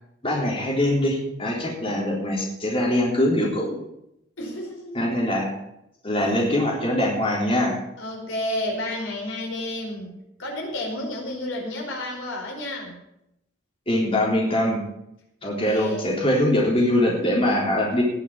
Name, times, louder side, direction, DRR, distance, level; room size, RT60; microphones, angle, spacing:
voice 1, 0.2-3.8 4.9-5.5 6.0-7.8 13.9-14.8 15.4-18.0, left 1 dB, 30° left, -2 dB, 3.6 m, -22 dB
voice 2, 4.4-5.0 6.2-6.8 8.0-13.0 15.4-16.2, left 1 dB, 85° left, -1 dB, 5.0 m, -32 dB
18.5 x 6.9 x 7.2 m, 0.82 s
head